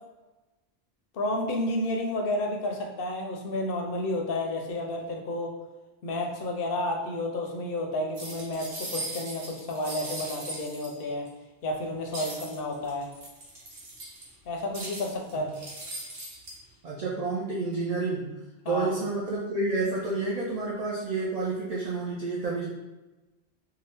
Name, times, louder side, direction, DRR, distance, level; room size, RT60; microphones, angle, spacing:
voice 1, 1.1-5.5 6.0-11.3 11.6-13.1 14.5-15.5 18.6-18.9, left 1 dB, 65° left, 2 dB, 0.7 m, -31 dB
sound 1, 8.1-11.3 12.1-14.3 14.7-16.5, right 1 dB, 75° right, 1.1 m, -39 dB
voice 2, 16.8-18.3 18.7-22.7, right 3 dB, 55° right, -4 dB, 0.4 m, -29 dB
2.8 x 2.3 x 3.3 m, 1.1 s
omnidirectional pair, 1.1 m